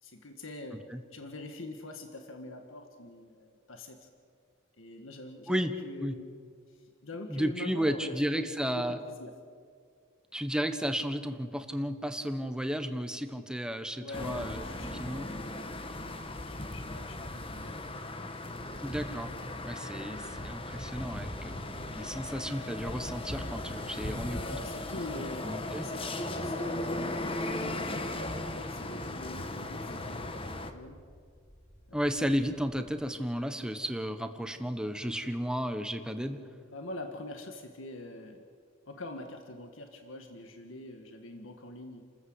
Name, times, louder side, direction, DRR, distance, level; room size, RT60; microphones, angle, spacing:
voice 1, 0.0-0.9 1.1-4.1 4.8-6.3 6.8-8.3 8.7-9.4 14.0-17.8 24.0-25.5 25.8-31.0 31.9-32.0 36.7-38.5 38.9-42.0, left 2 dB, 75° left, 5 dB, 1.8 m, -44 dB
voice 2, 7.3-9.0 10.3-14.7 15.0-15.3 18.8-19.3 19.6-24.6 25.4-25.8 31.9-36.4, equal, 5° right, 8 dB, 1.3 m, -33 dB
sound 1, 14.1-30.7, left 1 dB, 25° left, 1.3 m, -37 dB
sound 2, 26.8-32.9, equal, 45° left, 3.8 m, -59 dB
30.0 x 14.0 x 8.1 m, 2.2 s
head